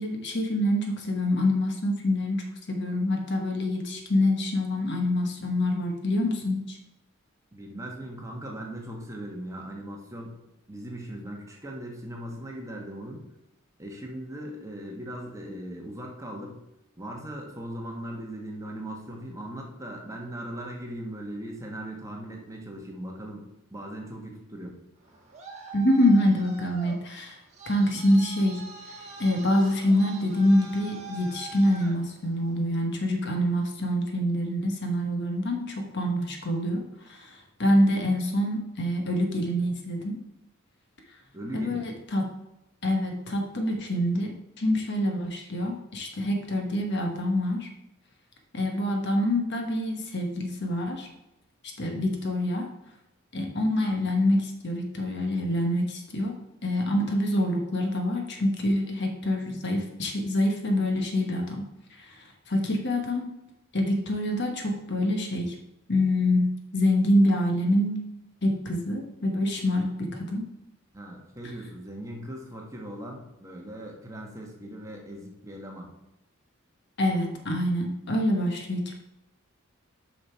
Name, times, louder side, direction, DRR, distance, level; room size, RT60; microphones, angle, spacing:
voice 1, 0.0-6.8 25.7-27.4 27.7-28.7 29.2-40.2 41.5-42.2 42.8-47.7 48.5-51.1 51.8-52.7 53.3-61.6 62.0-63.3 63.7-65.5 65.9-68.0 68.4-70.5 77.0-78.9, left 1 dB, 55° left, 3 dB, 1.2 m, -26 dB
voice 2, 7.5-10.3 10.7-13.3 13.8-16.6 17.0-24.8 41.3-41.9 70.9-75.9, right 1 dB, 15° right, 0 dB, 1.2 m, -39 dB
Traffic noise roadway noise, 25.0-32.7, right 3 dB, 35° right, 1.5 m, -44 dB
6.6 x 5.6 x 4.5 m, 0.91 s
head